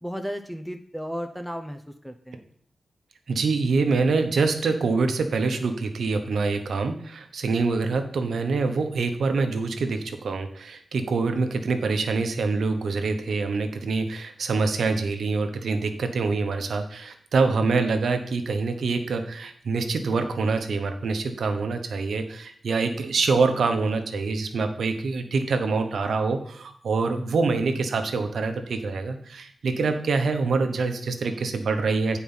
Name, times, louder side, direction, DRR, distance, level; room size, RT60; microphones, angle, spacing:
voice 1, 0.0-2.4, equal, ahead, 6 dB, 0.6 m, -34 dB
voice 2, 3.3-32.2, right 4 dB, 80° right, 7 dB, 1.0 m, -25 dB
8.7 x 4.6 x 5.6 m, 0.62 s
wide cardioid pair, 85°, 0 cm